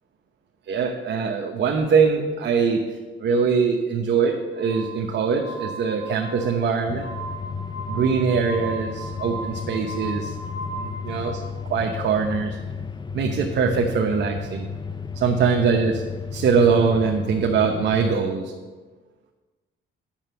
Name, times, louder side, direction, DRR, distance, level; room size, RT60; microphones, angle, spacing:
voice 1, 0.7-2.8 3.2-7.1 7.9-10.3 10.7-11.4 11.7-12.6 13.1-14.7 15.1-16.0 16.3-18.5, right 5 dB, 60° right, 2 dB, 1.0 m, -22 dB
Glass, 4.5-11.3, right 2 dB, 40° left, 2.2 m, -37 dB
sound 1, 6.9-18.1, left 5 dB, 20° left, 0.5 m, -34 dB
8.9 x 6.8 x 7.7 m, 1.4 s
cardioid pair, 90°, 20 cm